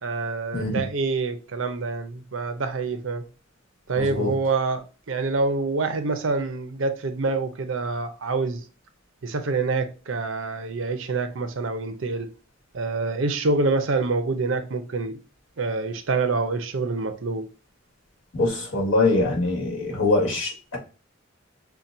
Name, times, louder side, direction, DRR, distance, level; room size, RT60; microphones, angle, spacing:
voice 1, 0.0-3.2 3.9-8.6 9.2-12.3 12.7-15.2 15.6-17.5, right 3 dB, 75° right, 0.6 m, -26 dB
voice 2, 4.0-4.3 18.3-20.8, left 2 dB, 85° left, 1.7 m, -23 dB
5.7 x 2.2 x 2.6 m
head